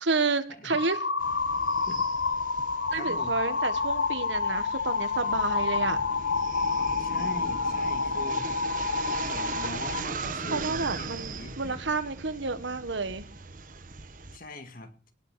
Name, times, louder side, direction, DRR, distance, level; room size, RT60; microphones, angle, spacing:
voice 1, 0.0-1.0 2.9-6.0 10.5-13.2, right 3 dB, 75° right, 11 dB, 1.5 m, -30 dB
sound 1, 0.7-10.0, left 4 dB, 70° left, 1.2 m, -29 dB
sound 2, 1.2-14.4, right 4 dB, 45° right, 1.2 m, -39 dB
voice 2, 2.9-3.4 7.0-8.5 9.2-11.8 14.3-14.9, left 2 dB, 50° left, 8 dB, 2.0 m, -42 dB
18.0 x 6.8 x 6.9 m, 0.43 s
head